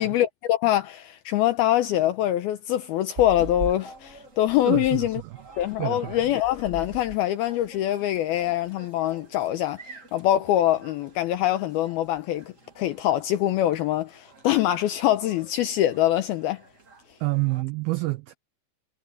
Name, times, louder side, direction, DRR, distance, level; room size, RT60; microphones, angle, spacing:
voice 1, 0.0-5.2 5.6-9.8 10.1-12.4 12.8-16.6, left 13 dB, 80° left, 2.3 m, -24 dB
sound 1, 3.1-17.6, right 2 dB, 35° right, 1.3 m, -45 dB
voice 2, 4.6-5.4 5.8-6.4 17.2-18.3, right 21 dB, 85° right, 2.1 m, -28 dB
omnidirectional pair, 5.2 m